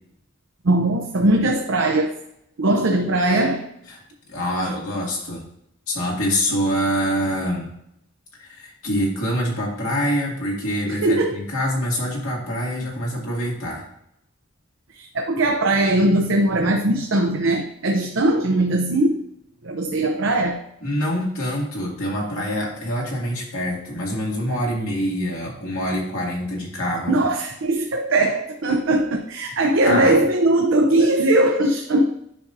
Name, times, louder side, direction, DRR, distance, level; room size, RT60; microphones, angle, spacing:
voice 1, 0.6-2.1 2.6-3.7 10.9-11.4 14.9-19.2 19.6-20.6 27.1-32.1, right 1 dB, 70° right, 3 dB, 0.7 m, -20 dB
voice 2, 4.3-5.5 5.9-7.7 8.4-13.9 20.8-27.2 29.8-30.2, equal, 90° left, -3 dB, 2.3 m, -25 dB
9.8 x 5.4 x 2.6 m, 0.78 s
head